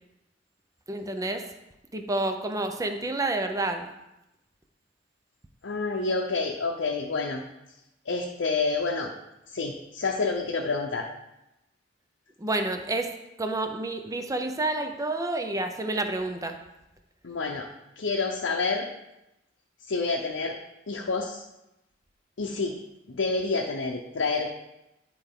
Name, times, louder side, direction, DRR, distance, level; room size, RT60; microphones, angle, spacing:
voice 1, 0.9-1.4 1.9-3.9 12.4-13.1 13.4-16.6, right 2 dB, 20° right, 6 dB, 0.6 m, -29 dB
voice 2, 5.6-7.4 8.1-9.1 9.5-11.1 17.2-17.7 18.0-18.9 19.9-20.6 20.9-21.4 22.4-22.7 23.1-24.5, left 4 dB, 75° left, 0 dB, 0.7 m, -28 dB
10.0 x 4.5 x 3.7 m, 0.91 s
head